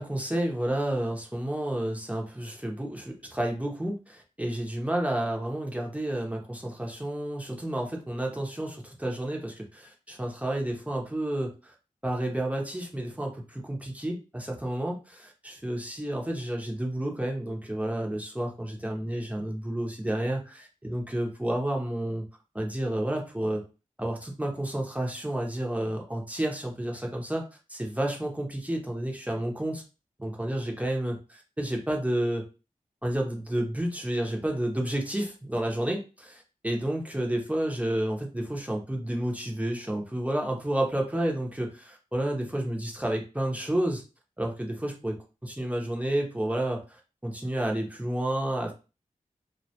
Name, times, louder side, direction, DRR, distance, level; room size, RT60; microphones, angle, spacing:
voice 1, 0.0-11.7 12.0-22.2 22.5-23.6 24.0-29.8 30.2-32.5 33.0-44.0 44.4-45.2 45.4-46.8 47.2-48.7, right 1 dB, 10° right, 0 dB, 0.6 m, -30 dB
2.2 x 2.1 x 2.7 m, 0.31 s
wide cardioid pair, 70°, 14 cm